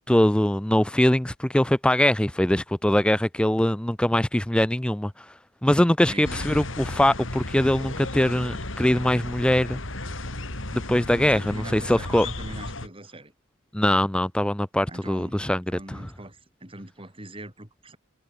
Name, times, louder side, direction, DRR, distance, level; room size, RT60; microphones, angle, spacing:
voice 1, 0.0-5.1 5.6-9.8 10.7-12.3 13.7-15.6 15.9-16.0, left 1 dB, 5° left, 0.4 m, -22 dB
voice 2, 6.1-6.5 11.1-13.3 14.9-18.0, right 1 dB, 25° right, 5.1 m, -41 dB
sound 1, 6.2-12.9, left 2 dB, 70° left, 3.9 m, -34 dB
head